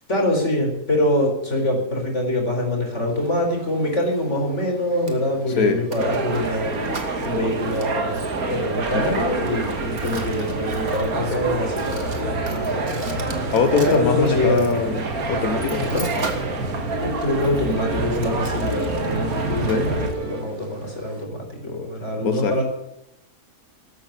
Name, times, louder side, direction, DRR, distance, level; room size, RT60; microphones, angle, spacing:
voice 1, 0.1-14.8 15.9-16.1 17.0-22.6, left 1 dB, 50° left, 4.9 m, -25 dB
Mechanisms, 3.1-21.2, right 3 dB, 55° right, 2.2 m, -40 dB
sound 1, 6.0-20.1, right 3 dB, 85° right, 2.1 m, -27 dB
voice 2, 8.9-9.2 13.5-16.0 19.7-19.9 22.2-22.6, left 5 dB, 80° left, 1.7 m, -23 dB
sound 2, 8.9-20.4, right 3 dB, 25° right, 3.9 m, -39 dB
13.5 x 12.0 x 7.3 m
omnidirectional pair, 1.5 m